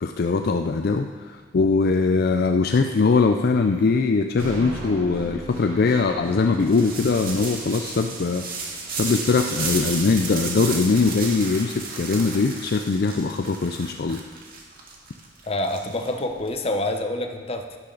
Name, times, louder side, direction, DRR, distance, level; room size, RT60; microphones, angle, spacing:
voice 1, 0.0-8.4 8.9-14.2, left 4 dB, 50° left, 6 dB, 0.4 m, -21 dB
sound 1, 2.8-4.0 4.5-5.4 5.9-6.8 8.8-8.9 10.7-11.5, left 1 dB, 10° left, 2.8 m, -43 dB
sound 2, 4.4-12.4, right 2 dB, 85° right, 1.6 m, -41 dB
sound 3, 6.6-16.5, right 4 dB, 50° right, 1.9 m, -33 dB
voice 2, 15.5-17.8, left 1 dB, 30° left, 5 dB, 0.9 m, -27 dB
12.0 x 11.5 x 3.9 m, 1.5 s
head